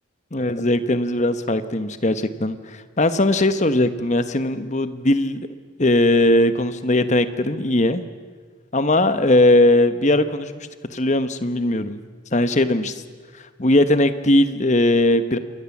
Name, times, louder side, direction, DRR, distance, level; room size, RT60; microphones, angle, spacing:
voice 1, 0.3-5.5 5.8-8.0 8.7-12.0 12.3-13.0 13.6-15.4, left 1 dB, 35° left, 11 dB, 1.2 m, -19 dB
27.5 x 21.5 x 7.3 m, 1.5 s
head